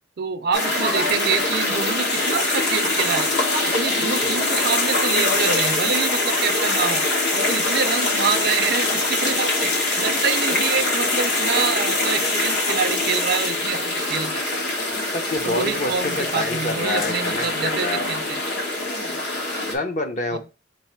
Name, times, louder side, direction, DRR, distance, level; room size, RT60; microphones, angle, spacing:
voice 1, 0.2-3.3 3.6-7.0 7.3-9.7 10.0-14.5 15.4-18.4 20.3-20.4, right 6 dB, 60° right, 10 dB, 0.5 m, -26 dB
sound 1, 0.5-19.8, left 2 dB, 65° left, 1.2 m, -23 dB
voice 2, 4.0-4.4 10.5-10.6 15.1-18.1 18.8-19.2 19.7-20.4, left 2 dB, 40° left, 5 dB, 0.7 m, -28 dB
4.6 x 2.5 x 4.4 m, 0.30 s
head